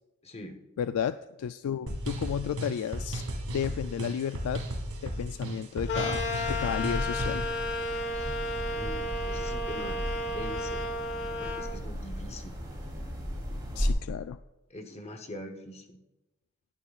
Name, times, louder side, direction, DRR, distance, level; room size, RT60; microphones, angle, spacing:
voice 1, 0.2-0.6 8.1-8.4 8.8-10.8 11.4-12.6 14.7-16.0, left 1 dB, 30° left, 6 dB, 0.9 m, -43 dB
voice 2, 0.8-3.2 3.5-4.7 5.0-7.4 13.8-14.4, left 8 dB, 75° left, 12 dB, 0.3 m, -33 dB
sound 1, 1.9-7.5, right 1 dB, 75° right, 2.1 m, -35 dB
sound 2, 5.9-11.7, left 1 dB, 50° left, 1.2 m, -33 dB
sound 3, 6.0-13.9, equal, 20° right, 3.0 m, -36 dB
17.5 x 9.9 x 2.4 m, 1.0 s
head